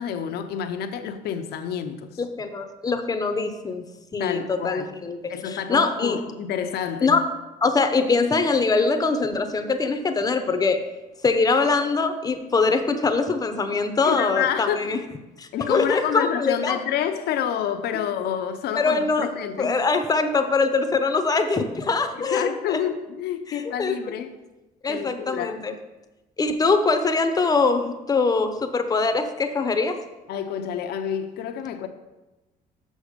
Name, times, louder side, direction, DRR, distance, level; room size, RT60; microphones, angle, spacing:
voice 1, 0.0-2.2 4.2-4.9 5.3-7.2 14.0-14.9 15.5-19.8 22.2-24.3 24.9-25.6 30.3-31.9, left 9 dB, 75° left, 0.7 m, -28 dB
voice 2, 2.2-3.8 4.1-6.2 7.0-7.2 7.6-10.8 11.2-15.0 15.4-16.8 18.8-19.3 19.6-22.8 23.5-23.9 24.8-25.7 26.4-30.0, left 4 dB, 20° left, 0.8 m, -23 dB
6.4 x 6.2 x 5.1 m
cardioid pair, 110°, 17 cm